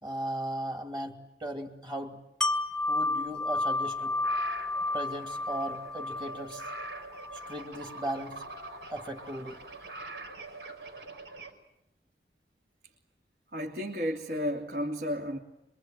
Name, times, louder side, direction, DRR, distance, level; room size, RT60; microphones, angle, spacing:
voice 1, 0.0-2.2 2.9-4.2 4.9-6.7 7.3-8.4 8.9-9.6, right 1 dB, 25° right, 2 dB, 2.7 m, -37 dB
Wind chime, 2.4-8.2 8.6-8.7, left 2 dB, ahead, 0.9 m, -32 dB
sound 1, 3.5-11.5, right 2 dB, 90° right, 5.1 m, -44 dB
voice 2, 13.5-15.4, equal, 65° right, -1 dB, 2.9 m, -32 dB
26.0 x 23.5 x 9.2 m, 0.83 s
head